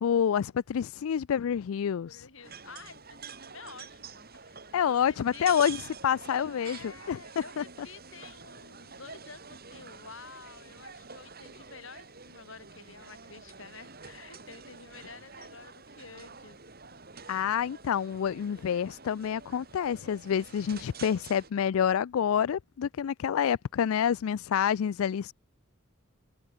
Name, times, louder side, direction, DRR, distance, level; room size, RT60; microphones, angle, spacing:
voice 1, 0.0-2.2 4.7-7.2 7.6-7.7 17.3-25.3, left 8 dB, 85° left, 0.4 m, -28 dB
voice 2, 2.0-5.6 6.5-16.6, left 4 dB, 70° left, 4.8 m, -50 dB
sound 1, 2.4-21.5, right 5 dB, 50° right, 6.8 m, -48 dB
open air
head